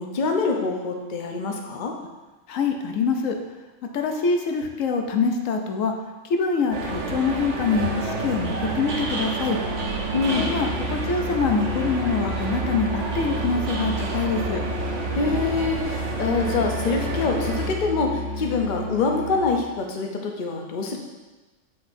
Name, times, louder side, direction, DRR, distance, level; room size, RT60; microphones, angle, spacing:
voice 1, 0.0-2.0 10.1-10.6 15.1-21.0, left 4 dB, 45° left, 2 dB, 0.8 m, -25 dB
voice 2, 2.5-3.4 3.9-5.9 6.2-9.6 10.3-14.6, left 5 dB, 80° left, 4 dB, 1.0 m, -25 dB
sound 1, 6.7-17.7, right 3 dB, 65° right, 1.2 m, -30 dB
Musical instrument, 7.7-19.6, right 1 dB, 90° right, 1.2 m, -31 dB
7.8 x 5.4 x 2.6 m, 1.2 s
omnidirectional pair, 1.3 m